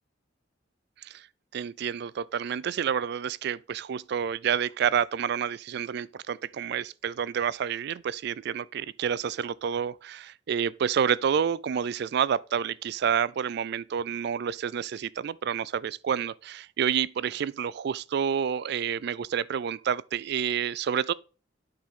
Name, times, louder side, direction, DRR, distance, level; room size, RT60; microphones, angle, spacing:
voice 1, 1.5-21.1, right 8 dB, 60° right, 0.3 m, -29 dB
8.7 x 5.6 x 3.6 m
head